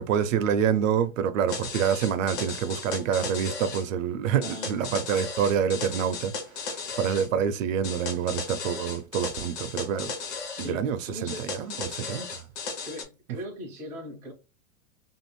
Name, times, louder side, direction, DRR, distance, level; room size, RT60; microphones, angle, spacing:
voice 1, 0.0-10.1 10.6-12.5, right 8 dB, 65° right, 0.5 m, -27 dB
sound 1, 1.5-3.8 4.4-7.3 7.8-10.7 11.3-13.0, left 4 dB, 40° left, 0.8 m, -36 dB
voice 2, 4.4-4.8 10.5-11.5 12.8-14.3, equal, 5° right, 0.4 m, -39 dB
2.7 x 2.6 x 3.0 m
supercardioid pair, 160°, 42 cm